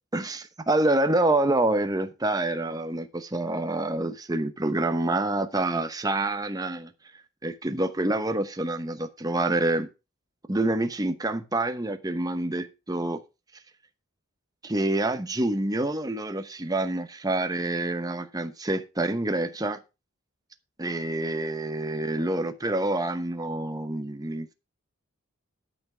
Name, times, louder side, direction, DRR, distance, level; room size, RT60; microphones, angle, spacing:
voice 1, 0.1-6.9 7.4-9.9 10.5-13.2 14.6-19.8 20.8-24.5, right 2 dB, 15° right, 0.9 m, -27 dB
12.5 x 5.8 x 5.6 m
head